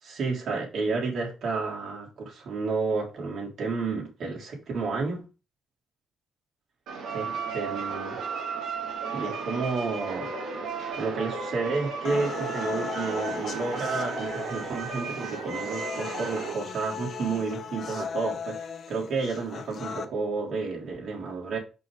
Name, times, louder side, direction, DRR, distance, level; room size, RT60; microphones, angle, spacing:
voice 1, 0.0-5.3 7.1-8.1 9.1-10.3 11.0-21.6, right 4 dB, 65° right, 3.6 m, -31 dB
sound 1, 6.9-16.5, right 5 dB, 80° right, 2.8 m, -34 dB
sound 2, 12.0-20.0, left 6 dB, 55° left, 1.0 m, -37 dB
6.0 x 5.7 x 5.0 m
cardioid pair, 90°, 0 cm